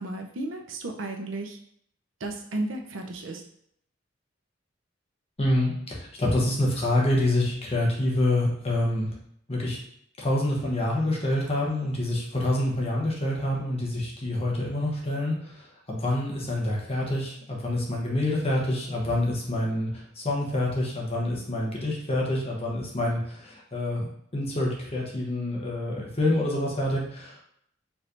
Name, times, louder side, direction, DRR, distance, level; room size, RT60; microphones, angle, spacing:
voice 1, 0.0-1.6 2.2-3.4, right 2 dB, 90° right, 2 dB, 0.7 m, -33 dB
voice 2, 5.4-9.1 9.5-9.8 10.2-24.1 24.3-27.4, left 1 dB, 30° left, -3 dB, 1.0 m, -27 dB
4.6 x 3.3 x 2.6 m, 0.70 s
head